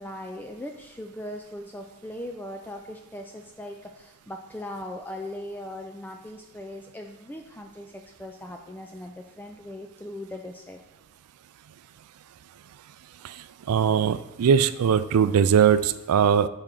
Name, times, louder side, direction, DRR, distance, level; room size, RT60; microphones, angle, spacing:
voice 1, 0.0-10.8, left 1 dB, 10° left, 3 dB, 0.3 m, -39 dB
voice 2, 13.2-16.5, right 7 dB, 85° right, 14 dB, 0.4 m, -21 dB
8.9 x 4.4 x 3.8 m, 1.0 s
head